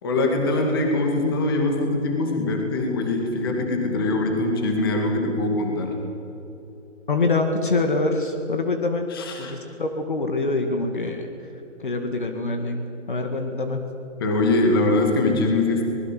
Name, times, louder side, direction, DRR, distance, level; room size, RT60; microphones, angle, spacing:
voice 1, 0.0-6.0 9.1-9.5 14.2-15.9, left 2 dB, 20° left, 2 dB, 2.4 m, -22 dB
voice 2, 7.1-9.1 9.4-11.3 11.8-13.8, left 3 dB, 40° left, 5 dB, 2.1 m, -25 dB
24.5 x 20.5 x 7.7 m, 3.0 s
hypercardioid pair, 170°, 37 cm